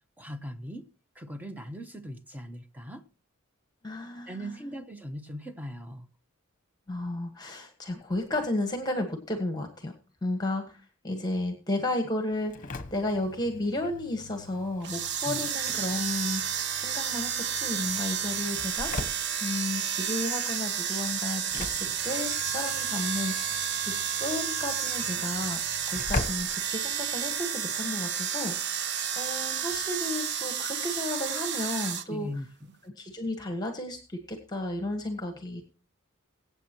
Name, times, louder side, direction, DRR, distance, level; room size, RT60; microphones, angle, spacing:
voice 1, 0.2-0.8 1.1-3.0 4.3-6.1 15.2-15.5 32.1-32.7, equal, 10° right, 1.0 m, -39 dB
voice 2, 3.8-4.7 6.9-9.9 10.2-16.5 16.8-18.9 19.4-25.6 25.9-28.9 29.2-32.3 32.8-35.6, left 2 dB, 20° left, 1.4 m, -33 dB
Engine / Slam, 12.3-27.4, left 2 dB, 40° left, 1.0 m, -42 dB
sound 1, 14.8-32.0, right 8 dB, 55° right, 0.8 m, -31 dB
22.5 x 8.2 x 3.0 m
head